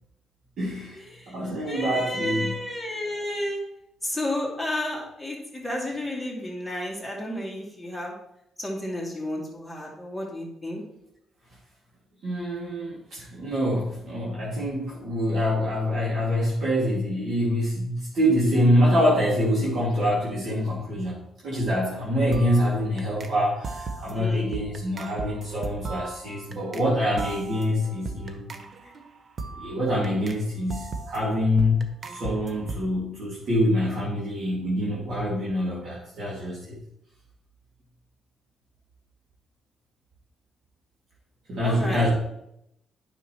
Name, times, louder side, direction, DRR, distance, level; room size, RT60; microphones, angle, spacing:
voice 1, 0.6-2.6 12.2-28.4 29.6-31.8 32.1-36.8 41.5-42.1, equal, 65° right, -6 dB, 2.2 m, -25 dB
voice 2, 1.6-3.6 4.0-8.1 8.6-10.8 24.1-24.6 41.6-42.1, left 1 dB, ahead, -3 dB, 2.3 m, -31 dB
sound 1, 21.9-22.1 22.3-23.3 23.6-26.9 27.2-30.4 30.7-32.9, right 3 dB, 45° right, 0.8 m, -37 dB
8.9 x 5.9 x 3.0 m, 0.80 s
cardioid pair, 90°, 0 cm